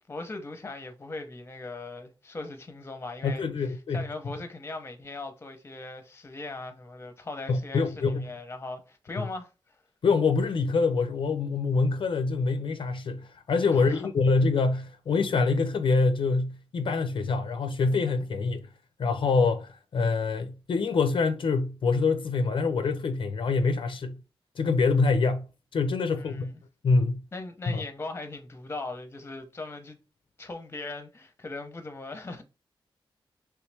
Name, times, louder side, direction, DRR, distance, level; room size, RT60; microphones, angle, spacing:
voice 1, 0.1-3.5 3.9-9.8 13.7-14.1 26.0-26.6 27.3-30.0 30.4-32.4, left 2 dB, 25° left, 0.7 m, -39 dB
voice 2, 3.2-4.1 7.5-8.3 9.1-9.3 10.0-18.7 19.0-24.2 24.6-25.5 25.7-26.5 26.8-27.2 27.7-27.8, left 4 dB, 65° left, 0.4 m, -25 dB
3.2 x 3.1 x 3.3 m
wide cardioid pair, 145°, 9 cm